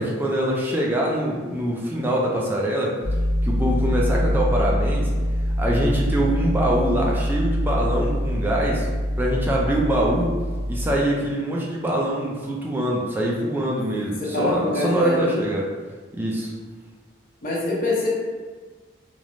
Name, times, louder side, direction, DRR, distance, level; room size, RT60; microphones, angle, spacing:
voice 1, 0.0-3.0 3.4-5.1 5.6-8.9 9.2-10.4 10.7-15.7 16.1-16.5, right 1 dB, 10° right, -3 dB, 0.3 m, -24 dB
sound 1, 3.0-11.0, equal, 80° right, 1.2 m, -24 dB
voice 2, 14.2-15.4 17.4-18.1, left 1 dB, 45° left, -4 dB, 0.6 m, -24 dB
3.0 x 2.0 x 2.5 m, 1.4 s
head